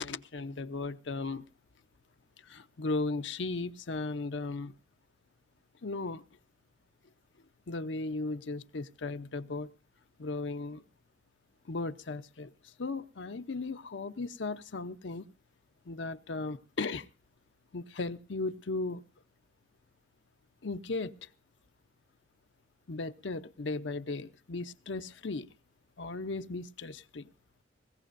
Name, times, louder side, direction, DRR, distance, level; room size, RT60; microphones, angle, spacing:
voice 1, 0.0-1.4 2.4-4.7 5.8-6.2 7.7-9.7 10.2-10.8 11.6-15.2 15.9-17.1 17.7-19.0 20.6-21.3 22.9-25.5 26.0-27.3, left 3 dB, 75° left, 0.7 m, -36 dB
20.5 x 17.0 x 2.6 m
head